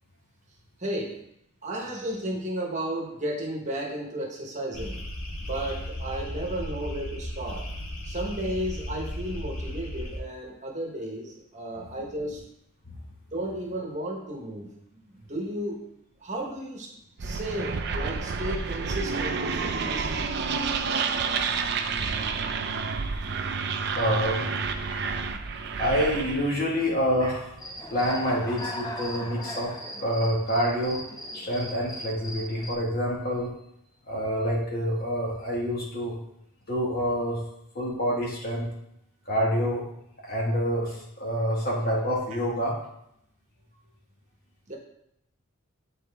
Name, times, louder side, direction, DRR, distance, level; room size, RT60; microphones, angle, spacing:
voice 1, 0.8-1.2 1.6-5.0 5.4-7.7 8.0-12.4 13.3-14.7 15.0-15.9 16.2-16.9 17.2-20.1 27.2-27.3 44.7-44.8, right 1 dB, 35° right, 0 dB, 1.1 m, -33 dB
sound 1, 4.7-10.2, left 1 dB, 90° left, 1.3 m, -35 dB
sound 2, 17.2-26.6, right 5 dB, 50° right, 0.5 m, -29 dB
voice 2, 23.9-24.7 25.8-27.5 27.9-29.7 30.0-31.0 31.3-33.5 34.1-36.2 36.7-37.4 37.8-38.7 39.3-39.8 40.2-42.8, equal, 45° left, -3 dB, 1.7 m, -27 dB
Human voice / Cricket, 27.6-32.7, left 1 dB, 20° left, 0.6 m, -38 dB
8.6 x 4.2 x 3.5 m, 0.77 s
head